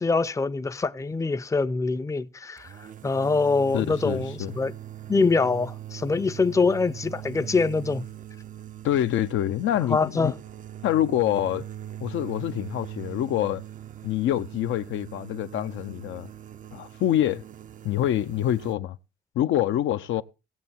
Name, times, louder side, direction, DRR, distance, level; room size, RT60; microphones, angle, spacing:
voice 1, 0.0-2.7 3.0-4.7 5.1-8.1 9.9-10.4, left 4 dB, 15° left, 0.5 m, -24 dB
sound 1, 2.6-18.7, right 12 dB, 40° right, 0.5 m, -41 dB
voice 2, 3.7-4.5 8.8-10.3 10.8-11.7 12.0-13.6 14.0-16.3 16.7-17.4 17.8-19.0 19.4-20.2, left 12 dB, 80° left, 0.6 m, -26 dB
17.0 x 6.9 x 4.3 m
cardioid pair, 90°, 20 cm